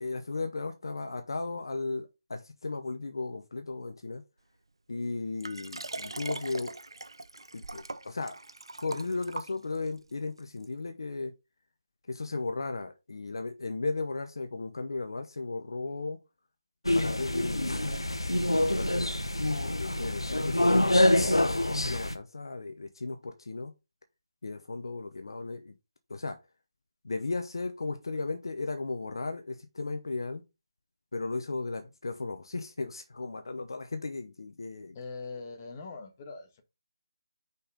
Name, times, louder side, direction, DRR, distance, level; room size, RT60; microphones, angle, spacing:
voice 1, 0.0-4.2 4.9-6.7 7.5-8.3 8.8-11.3 12.1-16.2 16.9-17.8 18.4-19.2 19.8-23.7 24.4-25.7 26.1-26.4 27.0-30.4 31.1-35.0, left 3 dB, 60° left, 0.9 m, -35 dB
Liquid, 5.4-10.0 10.6-10.7, right 2 dB, 70° right, 0.5 m, -41 dB
sound 1, 16.8-22.1, left 1 dB, 85° left, 1.0 m, -26 dB
voice 2, 34.9-36.6, left 4 dB, 25° left, 1.4 m, -42 dB
5.4 x 4.5 x 5.0 m
figure-of-eight pair, 155°, 3 cm